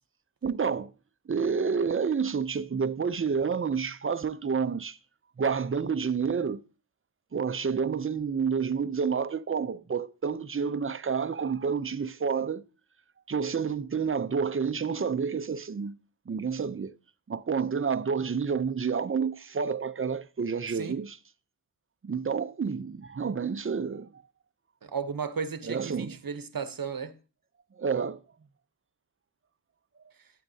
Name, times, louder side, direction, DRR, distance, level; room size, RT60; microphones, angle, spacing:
voice 1, 0.4-0.9 1.3-5.0 5.4-6.6 7.3-12.6 13.3-16.0 16.3-16.9 17.3-21.2 22.0-24.2 25.7-26.2 27.8-28.2, right 6 dB, 30° right, 0.5 m, -29 dB
voice 2, 24.8-27.1, right 6 dB, 55° right, 0.9 m, -34 dB
12.0 x 8.6 x 2.7 m
wide cardioid pair, 55°, 42 cm